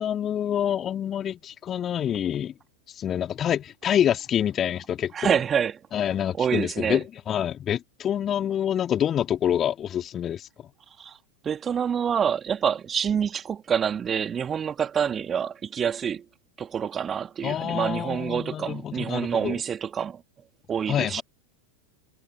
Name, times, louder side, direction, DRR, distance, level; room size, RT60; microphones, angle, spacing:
voice 1, 0.0-2.5 3.0-5.4 5.9-10.7 17.4-19.6 20.9-21.2, left 10 dB, 25° left, 3.3 m, -27 dB
voice 2, 5.1-5.7 6.4-7.0 11.0-11.2 11.4-16.2 16.6-20.2 20.7-21.2, right 7 dB, 20° right, 2.9 m, -27 dB
figure-of-eight pair, 90°, 0 cm